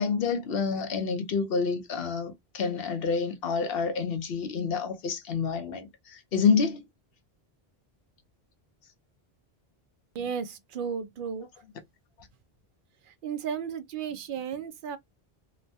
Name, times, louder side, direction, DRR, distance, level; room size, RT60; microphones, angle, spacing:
voice 1, 0.0-6.8, left 5 dB, 70° left, 0.9 m, -28 dB
voice 2, 10.1-11.5 13.2-15.0, right 7 dB, 60° right, 0.7 m, -34 dB
3.0 x 2.2 x 2.6 m
omnidirectional pair, 1.0 m